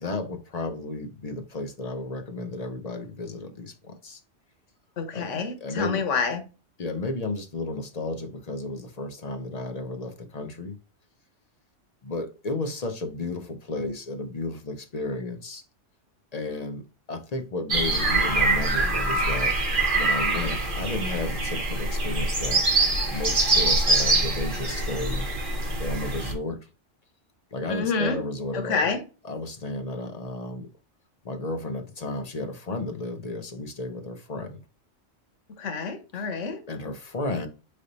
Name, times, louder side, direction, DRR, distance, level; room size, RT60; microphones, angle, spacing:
voice 1, 0.0-4.2 5.1-6.0 6.8-10.8 12.0-15.6 16.3-16.8 17.1-19.6 19.9-22.6 23.1-25.3 25.8-26.7 27.5-28.9 29.2-30.7 31.2-34.6 36.1-36.3 36.7-37.5, left 2 dB, 45° left, 0.6 m, -33 dB
voice 2, 5.0-6.4 27.7-28.2 28.5-29.0 35.6-36.6, left 4 dB, 90° left, 1.2 m, -28 dB
sound 1, 17.7-26.3, right 2 dB, 45° right, 1.6 m, -24 dB
3.9 x 3.3 x 3.9 m
omnidirectional pair, 1.2 m